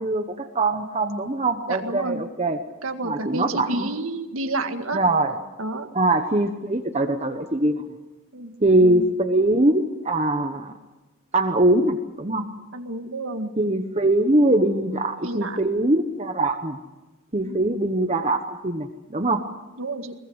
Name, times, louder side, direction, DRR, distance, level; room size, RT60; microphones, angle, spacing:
voice 1, 0.0-2.6 3.0-3.9 4.9-5.4 5.9-7.9 8.6-10.7 11.3-12.4 13.6-16.8 17.3-19.4, right 2 dB, 30° right, 5 dB, 1.2 m, -22 dB
voice 2, 1.7-2.2 2.8-5.0 5.6-5.9 8.3-8.5 8.8-9.1 12.7-13.5 15.2-15.6 17.4-17.7 19.8-20.1, right 2 dB, 70° right, 6 dB, 2.0 m, -30 dB
21.5 x 21.5 x 8.1 m, 1.1 s
head